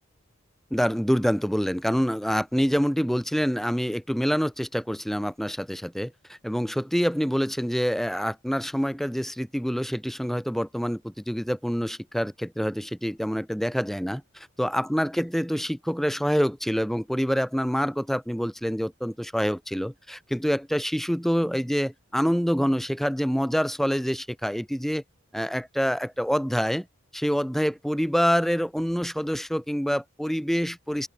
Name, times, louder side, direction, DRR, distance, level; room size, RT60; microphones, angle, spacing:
voice 1, 0.7-25.0 25.3-26.9 27.1-31.1, equal, ahead, 1.9 m, -26 dB
open air
head